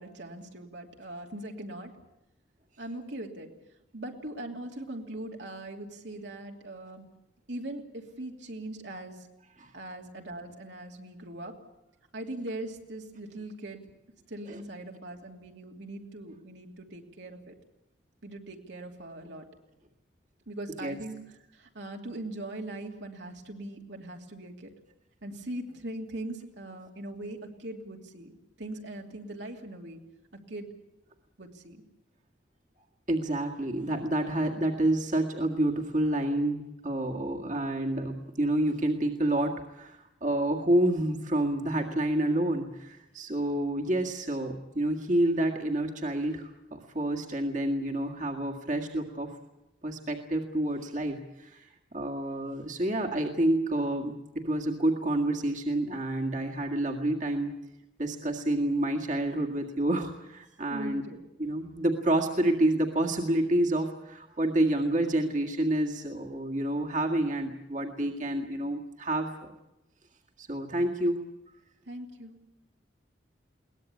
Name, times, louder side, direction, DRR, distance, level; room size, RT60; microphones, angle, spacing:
voice 1, 0.0-1.9 2.8-3.5 3.9-7.1 7.5-9.3 9.7-11.6 12.1-13.8 14.3-17.5 18.2-19.4 20.5-21.2 21.5-24.7 25.2-28.3 28.6-30.0 30.3-30.7 31.4-31.8 60.7-61.2 71.9-72.4, right 1 dB, 75° right, 1 dB, 2.8 m, -40 dB
voice 2, 33.1-49.3 49.8-57.5 58.0-61.0 61.4-69.5 70.4-71.2, right 1 dB, 40° right, 2 dB, 1.9 m, -28 dB
22.0 x 19.0 x 8.5 m, 0.91 s
head